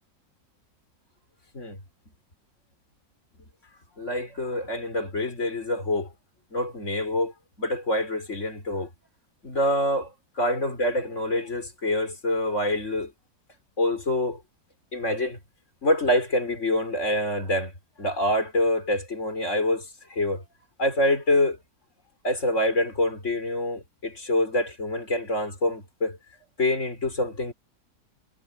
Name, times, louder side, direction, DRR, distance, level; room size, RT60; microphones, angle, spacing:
voice 1, 4.0-6.1 6.5-7.3 7.6-8.9 9.4-10.1 10.4-13.1 13.8-14.4 14.9-15.4 15.8-17.7 18.0-20.4 20.8-21.6 22.2-26.2 26.6-27.5, left 1 dB, 45° left, 5.0 m, -26 dB
omnidirectional pair, 1.7 m